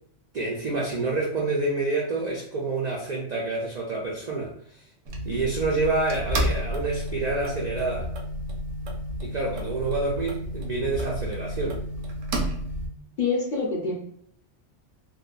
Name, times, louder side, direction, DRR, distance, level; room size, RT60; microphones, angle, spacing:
voice 1, 0.3-4.8 5.2-8.1 9.2-11.8, right 3 dB, 70° right, -2 dB, 0.4 m, -28 dB
sound 1, 5.1-12.9, equal, 90° right, 1.0 m, -31 dB
voice 2, 13.2-13.9, left 4 dB, 55° left, -2 dB, 0.6 m, -25 dB
2.8 x 2.2 x 2.4 m, 0.66 s
omnidirectional pair, 1.3 m